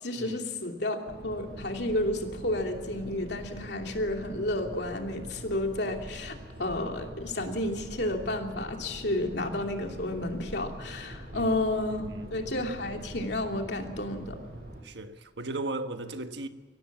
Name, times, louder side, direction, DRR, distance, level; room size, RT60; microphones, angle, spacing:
voice 1, 0.0-14.4, left 1 dB, 60° left, 2.8 m, -31 dB
sound 1, 1.1-14.8, right 1 dB, 50° right, 6.2 m, -44 dB
voice 2, 11.9-12.3 14.8-16.5, right 2 dB, 65° right, 1.4 m, -37 dB
23.5 x 17.0 x 7.4 m
head